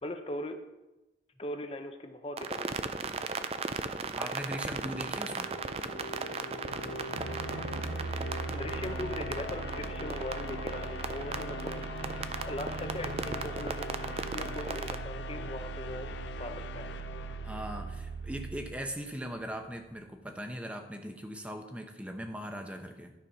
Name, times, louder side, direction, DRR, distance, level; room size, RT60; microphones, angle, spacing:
voice 1, 0.0-0.6 1.4-2.9 8.5-12.0 12.4-13.9 14.3-16.1 16.4-16.8, left 1 dB, 30° left, 6 dB, 0.6 m, -40 dB
sound 1, 2.4-15.0, right 4 dB, 35° right, 0.4 m, -37 dB
voice 2, 4.1-5.5 17.4-23.1, equal, 5° right, 4 dB, 0.8 m, -39 dB
sound 2, 5.1-18.2, left 4 dB, 75° left, 0.5 m, -42 dB
sound 3, 7.2-19.9, right 5 dB, 85° right, 0.6 m, -41 dB
12.0 x 4.3 x 5.5 m, 1.0 s
head